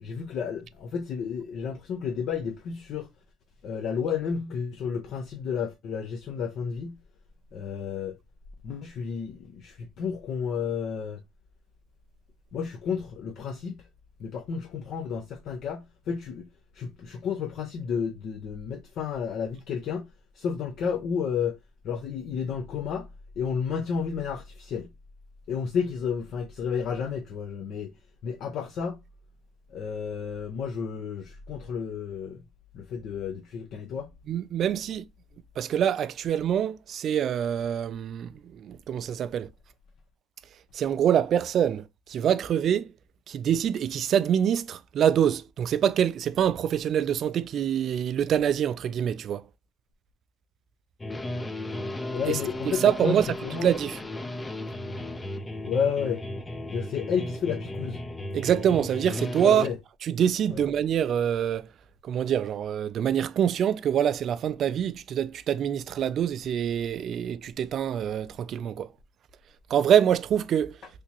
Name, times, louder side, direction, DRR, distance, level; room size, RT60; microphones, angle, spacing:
voice 1, 0.0-3.1 3.6-7.0 7.5-8.1 8.6-11.2 12.5-13.8 14.2-16.5 16.7-20.1 20.4-21.5 21.8-23.1 23.4-24.9 25.5-27.9 28.2-29.0 29.7-32.4 32.7-34.1 52.1-53.7 55.6-56.2 56.7-58.0 59.4-59.8 60.5-60.6, left 6 dB, 60° left, 0.6 m, -31 dB
voice 2, 34.3-35.0 35.6-39.5 40.7-41.8 42.1-42.8 43.3-49.4 52.3-52.4 52.7-53.3 53.6-54.0 58.3-59.7 60.0-61.7 62.0-68.9 69.7-70.7, right 9 dB, 50° right, 0.3 m, -25 dB
sound 1, 51.0-59.7, left 1 dB, 15° left, 0.4 m, -35 dB
3.4 x 2.9 x 2.8 m
supercardioid pair, 100°, 0 cm